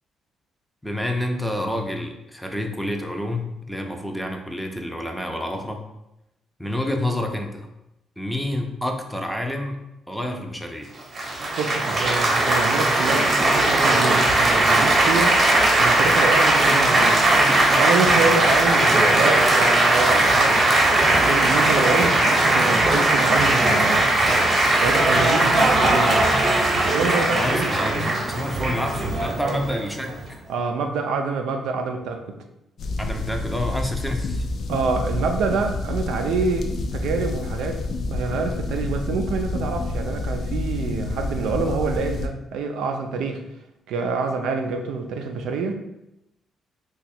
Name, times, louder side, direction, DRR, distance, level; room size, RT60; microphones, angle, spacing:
voice 1, 0.8-5.9 6.6-7.7 8.2-9.8 10.1-10.9 27.3-30.4 33.0-34.5, left 1 dB, ahead, 3 dB, 0.5 m, -28 dB
Laughter / Applause / Chatter, 11.2-30.3, right 2 dB, 45° right, 0.8 m, -19 dB
voice 2, 11.6-15.4 15.8-17.2 17.7-20.6 21.1-24.1 24.8-26.2 26.8-27.7 28.3-28.7 29.4-29.6 30.5-32.4 34.7-43.4 43.9-45.8, right 4 dB, 85° right, 5 dB, 0.4 m, -26 dB
sound 1, 32.8-42.3, left 2 dB, 60° left, 0.4 m, -28 dB
2.9 x 2.3 x 4.2 m, 0.88 s
cardioid pair, 90°, 0 cm